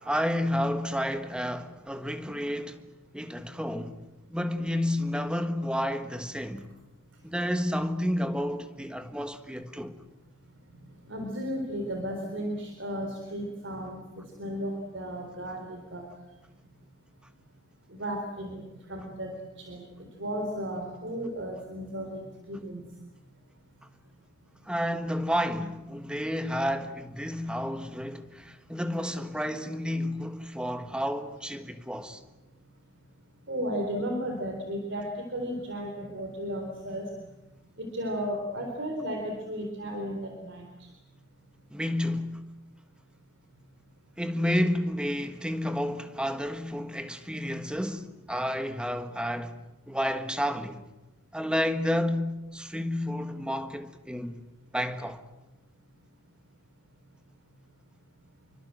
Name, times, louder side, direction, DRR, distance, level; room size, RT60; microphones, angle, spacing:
voice 1, 0.0-2.8 3.1-4.0 4.3-6.7 7.2-10.0 24.6-32.2 41.7-42.4 44.2-49.6 49.9-50.9 51.3-54.4 54.7-55.2, equal, 5° right, 1.5 m, -30 dB
voice 2, 11.1-14.0 14.4-16.0 17.9-18.6 18.9-19.3 19.6-19.8 20.2-22.8 33.5-37.0 37.8-40.7, equal, 65° right, 4.0 m, -34 dB
27.5 x 24.5 x 7.7 m
head